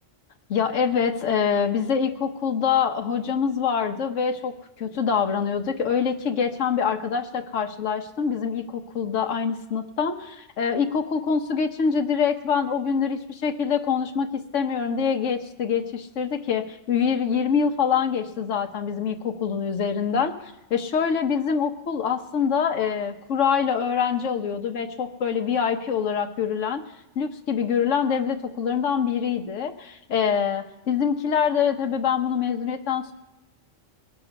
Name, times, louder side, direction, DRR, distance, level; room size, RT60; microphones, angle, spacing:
voice 1, 0.5-26.8 27.2-33.1, left 7 dB, 80° left, 4 dB, 1.3 m, -25 dB
21.5 x 7.6 x 5.8 m, 0.96 s
omnidirectional pair, 1.3 m